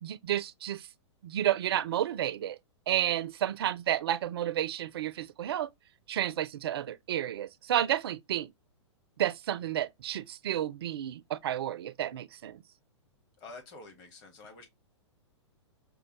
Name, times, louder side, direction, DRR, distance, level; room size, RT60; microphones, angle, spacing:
voice 1, 0.0-0.9 1.2-2.6 2.9-5.7 6.1-8.5 9.2-12.6, right 11 dB, 55° right, 0.4 m, -31 dB
voice 2, 13.4-14.7, left 3 dB, 30° left, 1.2 m, -48 dB
5.1 x 2.0 x 3.1 m
figure-of-eight pair, 105°, 16 cm